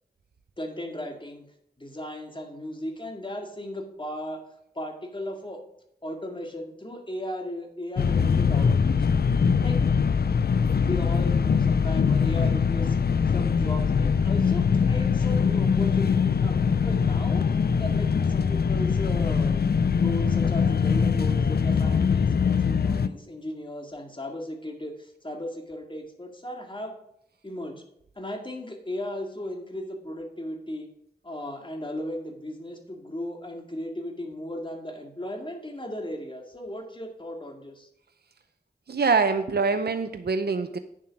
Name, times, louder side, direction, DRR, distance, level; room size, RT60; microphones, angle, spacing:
voice 1, 0.6-1.5 1.8-4.4 4.7-5.6 6.0-9.1 9.6-9.8 10.8-13.0 13.3-16.6 16.8-19.6 20.0-26.9 27.4-27.8 28.2-30.9 31.2-37.9, left 1 dB, 30° left, 3 dB, 2.2 m, -36 dB
sound 1, 8.0-23.1, left 6 dB, 70° left, 0.5 m, -22 dB
voice 2, 38.9-40.8, right 4 dB, 70° right, 8 dB, 0.7 m, -24 dB
9.2 x 7.3 x 5.9 m, 0.75 s
cardioid pair, 45°, 17 cm